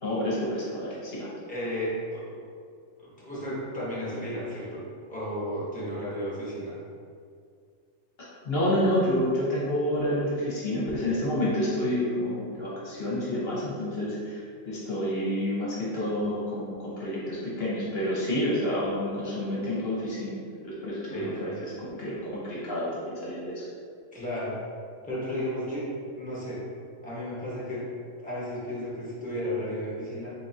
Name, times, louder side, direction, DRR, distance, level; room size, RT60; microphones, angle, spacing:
voice 1, 0.0-1.3 8.2-23.6, left 1 dB, 50° left, -7 dB, 1.1 m, -29 dB
voice 2, 1.5-2.4 3.0-4.8 5.1-6.8 21.1-21.5 24.1-24.6 25.0-25.8 26.2-26.6 27.0-27.8 28.2-30.3, equal, 5° left, -8 dB, 0.9 m, -33 dB
3.6 x 3.6 x 2.7 m, 2.2 s
omnidirectional pair, 1.4 m